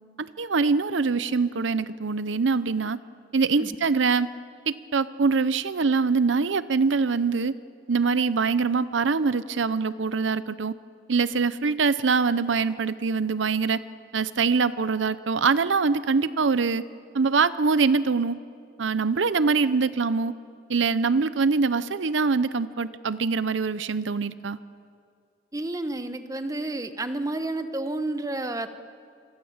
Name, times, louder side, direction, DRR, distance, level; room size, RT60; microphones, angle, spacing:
voice 1, 0.2-3.0 3.3-4.3 4.7-7.6 7.9-10.7 11.1-13.8 14.1-16.8 17.1-18.4 18.8-20.4 20.7-24.6, right 4 dB, 80° right, 15 dB, 0.7 m, -24 dB
voice 2, 25.5-28.7, right 2 dB, 20° right, 9 dB, 1.1 m, -30 dB
27.0 x 23.5 x 7.3 m, 2.2 s
head